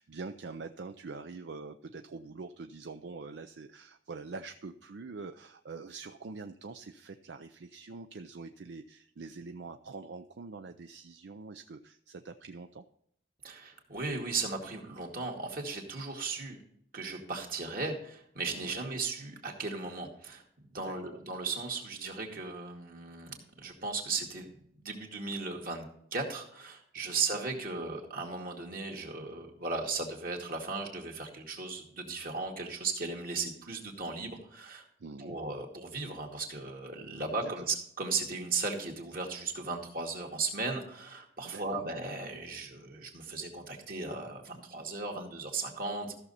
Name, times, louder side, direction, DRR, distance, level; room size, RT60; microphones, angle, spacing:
voice 1, 0.0-12.8 18.5-18.9 20.7-21.2 27.0-27.2 35.0-35.4 37.4-37.5 41.4-41.9, right 4 dB, 70° right, 8 dB, 0.5 m, -45 dB
voice 2, 13.4-16.6 16.9-20.4 20.7-34.8 35.2-46.1, right 4 dB, 50° right, 1 dB, 2.1 m, -36 dB
14.0 x 6.6 x 4.2 m, 0.69 s
head